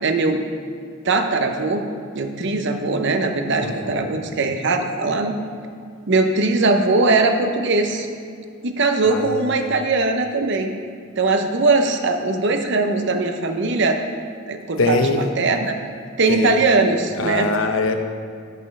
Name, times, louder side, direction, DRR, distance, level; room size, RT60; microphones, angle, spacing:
voice 1, 0.0-0.4 1.0-1.8 2.1-5.4 6.1-8.1 8.6-10.7 11.2-14.0 14.5-15.8 16.2-17.5, right 3 dB, 60° right, 6 dB, 0.8 m, -20 dB
voice 2, 3.6-4.1 9.0-9.6 14.8-15.3 16.3-16.6 17.1-17.9, left 3 dB, 75° left, 6 dB, 0.8 m, -23 dB
10.5 x 5.5 x 5.4 m, 2.3 s
head